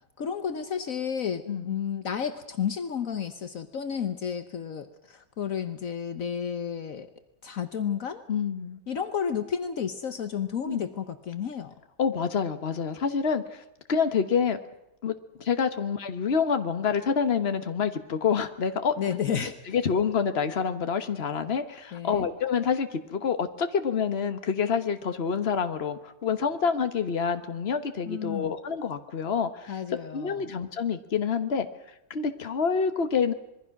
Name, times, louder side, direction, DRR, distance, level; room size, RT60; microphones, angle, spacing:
voice 1, 0.2-7.1 7.4-8.2 8.9-11.7 19.0-19.6 21.9-22.3 28.0-28.5 29.7-30.5, left 7 dB, 65° left, 9 dB, 1.4 m, -32 dB
voice 2, 8.3-8.8 10.6-10.9 12.0-13.6 13.9-14.6 15.0-19.0 19.7-29.8 30.1-31.7 32.1-33.3, left 6 dB, 45° left, 9 dB, 1.5 m, -27 dB
26.0 x 22.0 x 6.1 m, 0.88 s
omnidirectional pair, 1.6 m